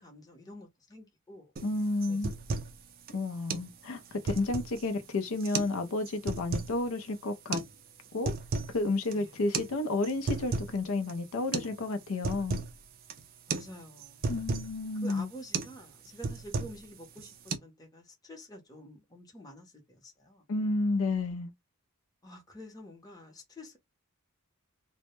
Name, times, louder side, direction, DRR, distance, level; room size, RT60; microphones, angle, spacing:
voice 1, 0.0-1.5 2.0-2.2 9.1-9.3 13.5-14.3 15.0-20.4 22.2-23.8, equal, 15° left, 0.7 m, -49 dB
voice 2, 1.6-2.3 3.1-7.6 8.1-8.3 8.7-12.6 14.3-15.3 20.5-21.5, left 2 dB, 75° left, 0.5 m, -31 dB
sound 1, 1.6-1.7 2.0-2.8 3.1-3.2 3.5-3.7 4.1-4.8 5.4-5.8 6.1-6.7 7.5-7.7 8.1-8.8 9.0-9.2 9.5-9.7 10.0-10.8 11.1-11.2 11.5-11.8 12.0-12.7 13.1-13.3 13.5-13.7 14.0-14.7 15.1-15.3 15.5-15.8 16.0-16.9 17.2-17.6, right 4 dB, 40° right, 0.4 m, -34 dB
2.1 x 2.0 x 2.9 m
head